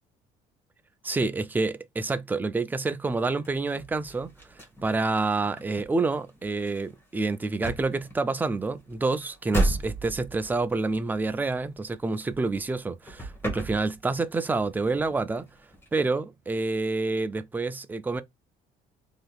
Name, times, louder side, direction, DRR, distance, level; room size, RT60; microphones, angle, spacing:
voice 1, 1.0-15.5 15.9-18.2, right 3 dB, 10° right, 0.3 m, -28 dB
sound 1, 3.4-12.8 13.0-14.3 14.6-16.1, right 1 dB, 15° left, 1.1 m, -35 dB
3.4 x 2.7 x 2.3 m
cardioid pair, 110°, 17 cm